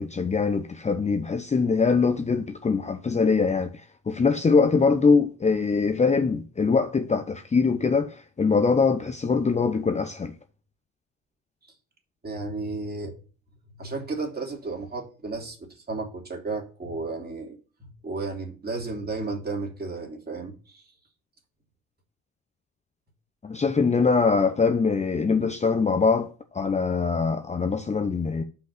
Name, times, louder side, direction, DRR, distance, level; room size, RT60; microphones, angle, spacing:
voice 1, 0.0-10.3 23.4-28.4, left 4 dB, 20° left, 0.8 m, -23 dB
voice 2, 12.2-13.1 13.8-20.8, right 3 dB, 30° right, 2.9 m, -33 dB
5.7 x 5.2 x 6.5 m
hypercardioid pair, 65°, 34 cm